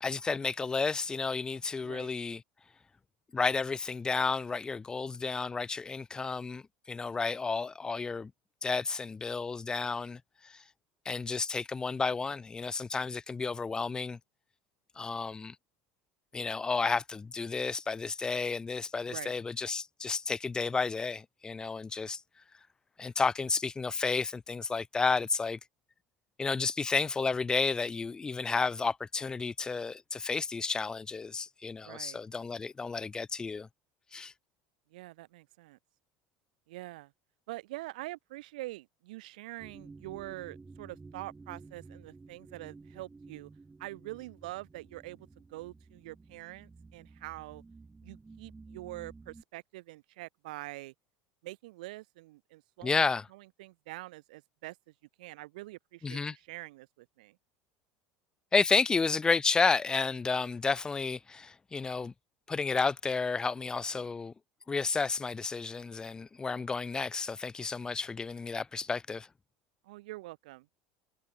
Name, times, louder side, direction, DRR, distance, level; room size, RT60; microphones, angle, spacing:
voice 1, 0.0-2.4 3.3-6.6 6.9-8.3 8.6-10.5 11.1-14.2 15.0-15.5 16.3-22.2 23.0-25.6 26.4-33.7 34.1-34.3 52.8-53.3 56.0-56.4 58.5-62.1 62.5-64.3 64.7-69.3, left 4 dB, 20° left, 0.6 m, -31 dB
voice 2, 31.8-32.2 34.9-35.8 36.7-37.1 37.5-43.5 43.8-47.6 48.0-50.9 51.4-53.0 53.3-54.8 55.2-57.4 69.8-70.7, right 19 dB, 85° right, 3.1 m, -45 dB
sound 1, 39.6-49.4, right 3 dB, 15° right, 1.5 m, -52 dB
supercardioid pair, 110°, 4 cm